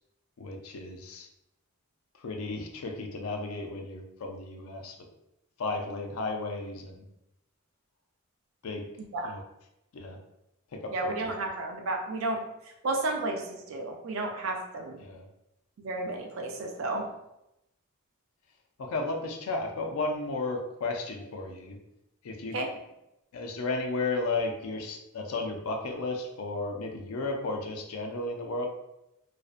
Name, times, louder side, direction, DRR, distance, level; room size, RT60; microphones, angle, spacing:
voice 1, 0.4-1.3 2.2-5.0 5.6-7.1 8.6-8.9 9.2-9.4 9.9-10.2 10.7-11.5 15.0-15.3 18.8-21.8 22.2-22.6 23.3-28.7, left 3 dB, 75° left, 3 dB, 0.4 m, -34 dB
voice 2, 10.9-12.4 12.8-15.0 15.8-17.0 22.5-22.7, right 2 dB, 65° right, 2 dB, 0.4 m, -32 dB
2.5 x 2.1 x 2.4 m, 0.86 s
head